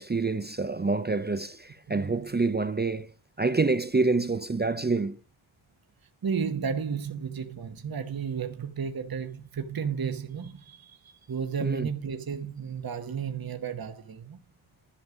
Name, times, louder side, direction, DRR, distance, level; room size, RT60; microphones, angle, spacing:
voice 1, 0.0-5.2 11.6-11.9, right 3 dB, 20° right, 0.5 m, -27 dB
voice 2, 1.9-2.3 6.2-14.4, right 6 dB, 45° right, 1.2 m, -33 dB
11.5 x 7.3 x 5.0 m
wide cardioid pair, 130°, 49 cm